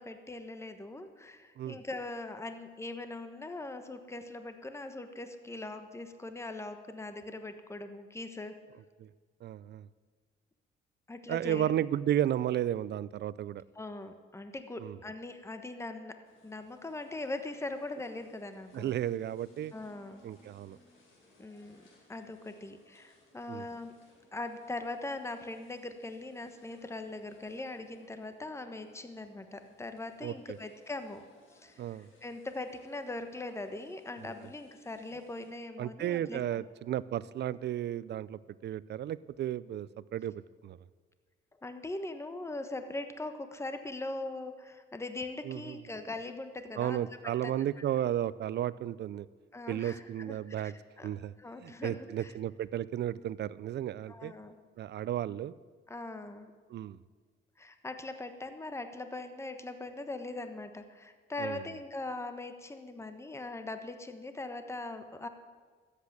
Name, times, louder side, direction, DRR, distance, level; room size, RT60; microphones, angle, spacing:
voice 1, 0.0-8.6 11.1-11.8 13.7-16.2 16.4-18.9 19.7-20.2 21.4-21.8 22.1-23.9 24.3-31.2 31.5-36.6 41.6-47.1 47.4-47.5 49.5-51.1 51.4-52.3 54.1-54.5 55.9-56.5 57.6-65.3, left 2 dB, 15° left, 8 dB, 1.2 m, -41 dB
voice 2, 9.4-9.9 11.3-13.6 14.8-15.0 18.7-19.7 20.2-20.8 23.5-23.6 30.2-30.3 31.8-32.1 35.8-40.3 40.6-40.8 45.4-45.8 46.8-49.3 49.7-50.7 51.0-51.3 51.6-54.3 54.8-55.5 56.7-57.0 61.4-61.6, right 11 dB, 60° right, 19 dB, 0.5 m, -33 dB
sound 1, 16.2-35.5, left 2 dB, 80° left, 4.4 m, -64 dB
13.0 x 8.4 x 8.6 m, 1.5 s
cardioid pair, 90°, 20 cm